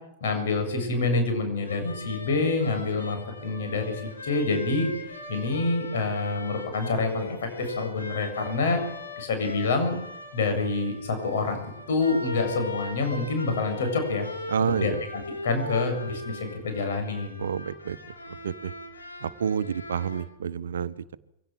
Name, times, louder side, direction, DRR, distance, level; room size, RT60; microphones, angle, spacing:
voice 1, 0.2-8.8 9.2-10.0 10.3-14.3 14.6-14.9 15.4-17.4, left 3 dB, 55° left, 6 dB, 7.8 m, -27 dB
sound 1, 1.6-20.2, left 2 dB, 80° left, 4.2 m, -40 dB
voice 2, 14.5-15.0 17.4-18.0 18.4-18.7 19.2-21.2, right 7 dB, 65° right, 15 dB, 0.9 m, -29 dB
24.0 x 17.5 x 7.6 m, 0.84 s
figure-of-eight pair, 100°, 0 cm